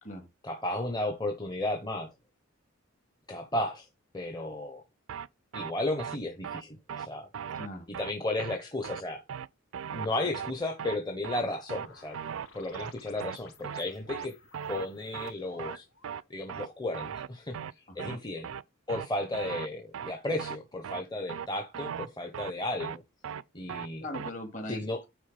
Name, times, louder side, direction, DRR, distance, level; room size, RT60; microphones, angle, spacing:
voice 1, 0.4-2.1 3.3-3.9 4.1-4.8 5.5-7.3 8.0-9.2 9.9-12.2 12.5-14.3 14.7-15.8 16.3-18.5 18.9-23.0 23.5-24.0 24.7-25.0, left 1 dB, 20° left, 0.9 m, -34 dB
sound 1, 5.1-5.3 5.5-5.7 6.0-6.2 6.4-6.6 6.9-7.1 7.3-7.7 7.9-8.1 8.4-8.6 8.8-9.0 9.3-9.5 9.7-10.1 10.3-10.5 10.8-11.0 11.2-11.4 11.7-11.9 12.1-12.5 12.7-12.9 13.2-13.4 13.6-13.8 14.1-14.3 14.5-14.9 15.1-15.3 15.6-15.8 16.0-16.2 16.5-16.7 16.9-17.3 17.5-17.7 18.0-18.2 18.4-18.6 18.9-19.1 19.3-19.7 19.9-20.1 20.4-20.6 20.8-21.0 21.3-21.5 21.7-22.1 22.3-22.5 22.8-23.0 23.2-23.4 23.7-23.9 24.1-24.3, right 8 dB, 70° right, 0.4 m, -37 dB
voice 2, 7.5-7.9 17.9-18.2 24.0-25.1, left 1 dB, 40° left, 2.1 m, -40 dB
sound 2, 11.7-16.3, left 3 dB, 85° left, 3.0 m, -55 dB
9.3 x 4.0 x 5.0 m
head